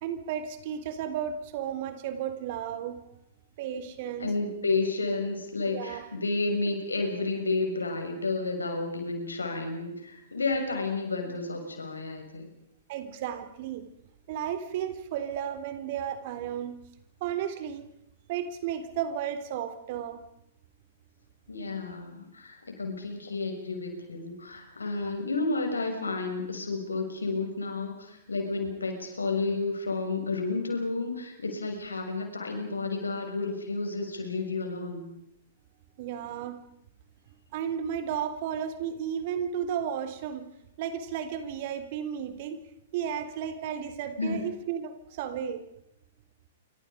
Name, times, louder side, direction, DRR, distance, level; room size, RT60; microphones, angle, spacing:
voice 1, 0.0-3.0 3.6-4.3 5.7-6.0 12.9-13.8 14.3-16.8 17.2-17.9 18.3-20.2 36.0-36.6 37.5-40.5 40.8-42.6 42.9-45.6, right 9 dB, 50° right, 9 dB, 3.6 m, -33 dB
voice 2, 4.2-12.5 21.5-35.1 44.2-44.4, left 3 dB, 90° left, 4 dB, 6.7 m, -31 dB
28.5 x 26.0 x 5.2 m, 0.77 s
hypercardioid pair, 115°, 0 cm